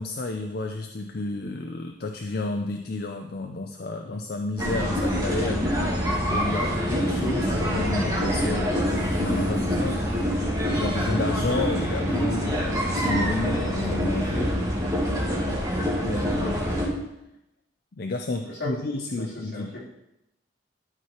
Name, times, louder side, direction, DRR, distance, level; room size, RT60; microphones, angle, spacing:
voice 1, 0.0-5.7 6.1-10.2 10.7-14.6 16.0-16.9 18.0-19.8, left 2 dB, 55° left, 4 dB, 0.5 m, -31 dB
sound 1, 4.6-16.9, equal, 20° right, 2.2 m, -25 dB
voice 2, 15.2-15.5 18.4-18.7 19.2-19.8, left 2 dB, 75° left, -7 dB, 3.5 m, -37 dB
12.0 x 4.8 x 4.4 m, 0.87 s
head